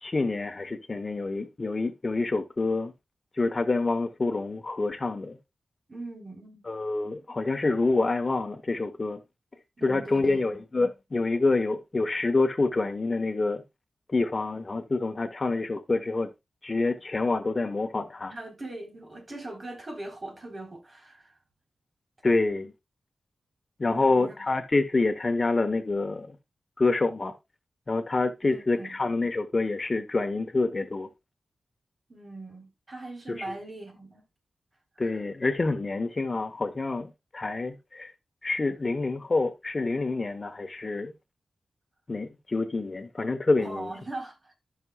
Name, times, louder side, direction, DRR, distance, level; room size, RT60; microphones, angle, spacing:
voice 1, 0.0-2.9 3.4-5.4 6.7-9.2 9.8-13.6 14.1-16.3 16.6-18.3 22.2-22.7 23.8-26.4 26.8-27.3 27.9-31.1 33.4-33.5 35.0-38.1 38.4-41.1 42.1-43.9, left 3 dB, 40° left, 1.1 m, -27 dB
voice 2, 5.9-6.6 9.8-10.6 18.3-21.4 23.9-24.4 28.4-29.0 32.1-34.2 35.0-35.1 43.6-44.6, right 2 dB, 40° right, 3.7 m, -41 dB
14.0 x 6.1 x 2.3 m
wide cardioid pair, 80°, 0 cm